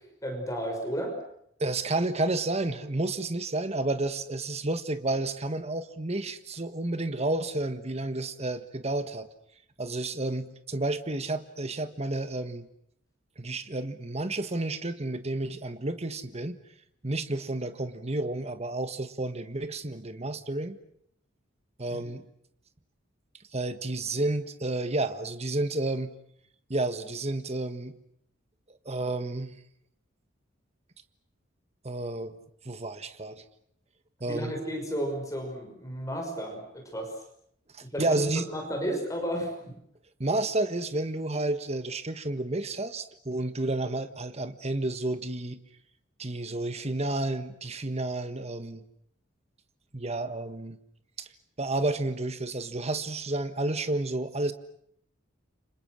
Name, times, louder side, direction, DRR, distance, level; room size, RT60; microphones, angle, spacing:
voice 1, 0.2-1.1 21.9-22.0 34.3-37.1 37.8-38.2 38.5-39.8, equal, 15° left, 3 dB, 5.8 m, -33 dB
voice 2, 1.6-9.3 9.8-12.7 13.4-16.6 17.0-20.8 21.8-22.2 23.5-26.1 26.7-28.0 28.7-29.5 31.8-32.4 32.6-33.4 34.2-34.5 37.7-38.5 40.2-45.6 46.2-48.8 49.9-50.8 51.2-51.3 51.6-54.5, right 2 dB, 35° right, 10 dB, 1.5 m, -31 dB
30.0 x 26.5 x 6.4 m, 0.71 s
head